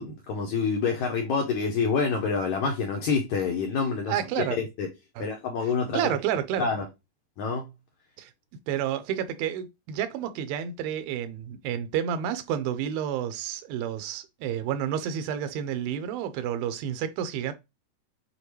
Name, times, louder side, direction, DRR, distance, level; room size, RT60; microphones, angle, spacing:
voice 1, 0.0-4.9 5.2-6.2 6.6-6.9 7.4-7.7, left 5 dB, 80° left, 1.7 m, -27 dB
voice 2, 4.1-4.6 5.2-5.3 5.9-6.7 8.2-8.3 8.7-17.5, right 9 dB, 90° right, 2.4 m, -30 dB
6.7 x 2.3 x 3.0 m
omnidirectional pair, 4.1 m